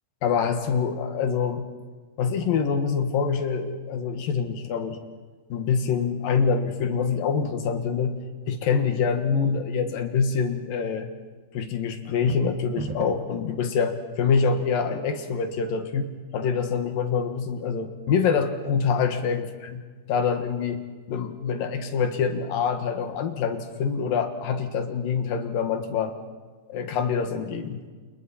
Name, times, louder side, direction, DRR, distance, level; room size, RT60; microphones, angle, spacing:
voice 1, 0.2-1.7 2.2-5.0 5.5-8.2 8.5-11.1 11.5-19.8 20.1-20.8 21.1-26.2 26.7-27.8, left 6 dB, 65° left, 6 dB, 3.1 m, -25 dB
sound 1, 12.1-13.4, right 5 dB, 75° right, 3.5 m, -35 dB
29.0 x 28.5 x 4.3 m, 1.4 s
omnidirectional pair, 4.5 m